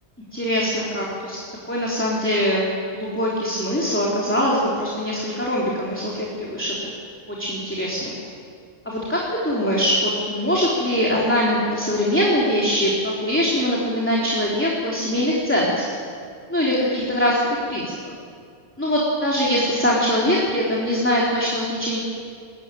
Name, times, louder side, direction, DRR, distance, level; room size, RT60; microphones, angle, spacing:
voice 1, 0.3-1.4 1.7-2.6 2.9-6.9 7.4-8.1 8.9-15.9 16.5-18.0 18.8-22.0, equal, 10° left, -5 dB, 3.5 m, -22 dB
23.0 x 19.5 x 9.1 m, 2.3 s
omnidirectional pair, 1.1 m